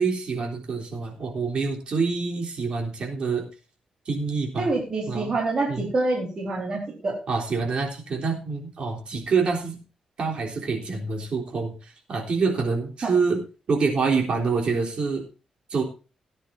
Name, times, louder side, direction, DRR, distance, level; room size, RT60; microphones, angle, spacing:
voice 1, 0.0-3.5 4.1-4.8 5.1-5.3 5.7-5.9 7.3-9.8 10.2-11.7 12.1-13.4 13.7-15.3 15.7-15.8, right 4 dB, 55° right, 1 dB, 3.6 m, -26 dB
voice 2, 4.6-7.2 13.0-13.1, right 3 dB, 35° right, -2 dB, 4.2 m, -26 dB
18.0 x 9.9 x 2.7 m, 0.33 s
wide cardioid pair, 135°, 2 cm